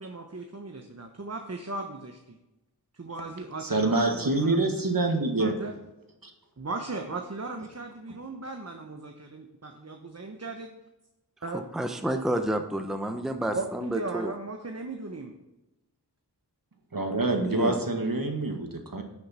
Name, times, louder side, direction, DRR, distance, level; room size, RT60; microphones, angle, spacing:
voice 1, 0.0-2.4 2.9-4.6 5.4-5.8 6.6-10.7 11.4-11.6 13.5-15.4, right 3 dB, 40° right, 4 dB, 1.1 m, -37 dB
voice 2, 3.6-5.5 6.2-6.3 16.9-19.0, right 2 dB, 55° right, 4 dB, 1.8 m, -26 dB
voice 3, 11.5-14.3 17.4-17.9, right 1 dB, ahead, 6 dB, 0.8 m, -30 dB
11.0 x 6.5 x 4.3 m, 0.99 s
wide cardioid pair, 60°, 41 cm